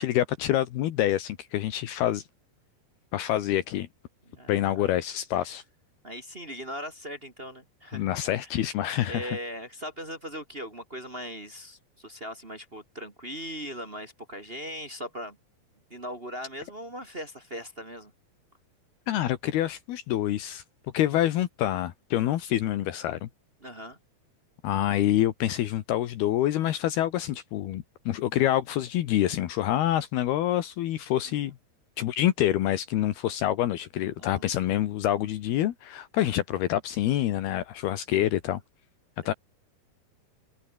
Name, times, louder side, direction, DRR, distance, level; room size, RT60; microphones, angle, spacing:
voice 1, 0.0-2.2 3.1-3.9 4.5-5.6 7.9-9.3 19.1-20.6 20.9-23.3 24.6-31.5 32.0-38.6 39.3-39.4, left 13 dB, 75° left, 3.3 m, -26 dB
voice 2, 4.2-4.9 5.4-5.5 6.0-8.1 8.4-8.5 9.0-15.4 15.9-18.1 23.6-24.0 31.4-31.5 34.2-34.4, equal, 25° right, 1.2 m, -39 dB
omnidirectional pair, 4.6 m